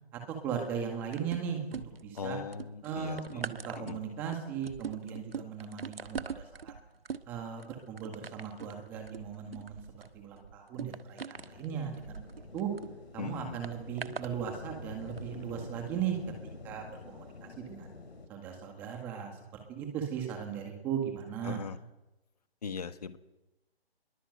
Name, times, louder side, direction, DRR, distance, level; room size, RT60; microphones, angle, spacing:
voice 1, 0.1-2.4 2.8-6.7 7.3-9.8 10.1-12.3 12.5-12.7 13.1-16.2 16.6-17.9 18.3-21.6, right 8 dB, 5° right, 3 dB, 1.7 m, -37 dB
sound 1, 1.1-2.2 2.5-12.9 13.6-14.3 15.1-15.2, right 6 dB, 65° right, 1.5 m, -43 dB
voice 2, 2.1-3.2 3.8-4.0 13.2-13.6 21.4-21.8 22.6-23.2, left 6 dB, 40° left, 11 dB, 1.5 m, -39 dB
sound 2, 11.3-18.3, left 3 dB, 80° left, 6.0 m, -48 dB
27.0 x 22.0 x 8.0 m, 1.0 s
hypercardioid pair, 175°, 32 cm